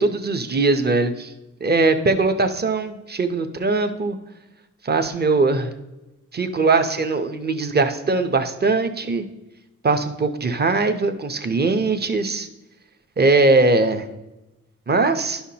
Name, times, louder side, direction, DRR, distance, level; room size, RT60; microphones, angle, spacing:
voice 1, 0.0-1.3 1.6-4.2 4.8-5.7 6.3-9.3 9.8-12.5 13.2-14.1 14.9-15.4, right 3 dB, 30° right, 8 dB, 0.7 m, -20 dB
11.0 x 5.7 x 2.8 m, 0.99 s
wide cardioid pair, 100°, 31 cm